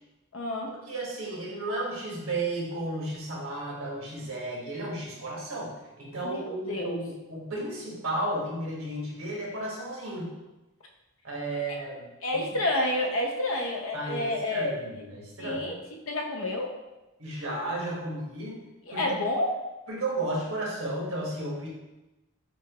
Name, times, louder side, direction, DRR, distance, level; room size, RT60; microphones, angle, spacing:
voice 1, 0.3-0.7 6.2-7.0 12.2-14.7 15.4-15.7 16.1-16.7 18.9-19.5, left 1 dB, 75° left, 1 dB, 0.7 m, -29 dB
voice 2, 0.9-10.3 11.2-12.4 13.9-15.7 17.2-18.6 18.9-19.0 19.9-21.7, right 1 dB, 85° right, -3 dB, 1.3 m, -33 dB
6.0 x 2.4 x 2.9 m, 1.0 s
head